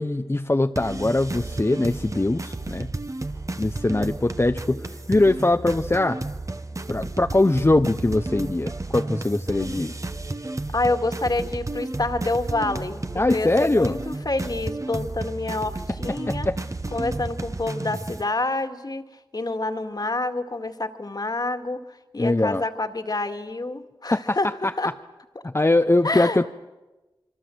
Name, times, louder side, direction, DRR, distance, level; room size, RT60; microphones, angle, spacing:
voice 1, 0.0-2.9 3.6-6.2 6.9-9.9 13.1-14.0 16.3-16.6 22.2-22.6 24.1-24.4 25.4-26.5, left 2 dB, 30° left, 7 dB, 0.8 m, -22 dB
sound 1, 0.8-18.2, right 2 dB, 35° right, 1.3 m, -32 dB
voice 2, 10.7-13.0 13.3-16.5 16.9-19.1 19.3-24.9 26.0-26.4, left 2 dB, 45° left, 7 dB, 2.1 m, -27 dB
27.0 x 23.5 x 7.9 m, 1.1 s
cardioid pair, 45°, 9 cm